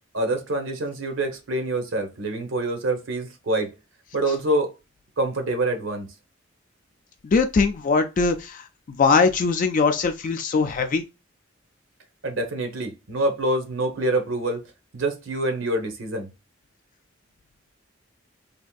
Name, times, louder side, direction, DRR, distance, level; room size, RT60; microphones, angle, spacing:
voice 1, 0.1-3.7 4.1-4.7 5.2-6.1 12.2-14.6 14.9-16.3, right 1 dB, 85° right, 0.8 m, -26 dB
voice 2, 7.2-8.6 9.0-11.0, left 4 dB, 40° left, 0.3 m, -21 dB
3.4 x 2.5 x 2.2 m
head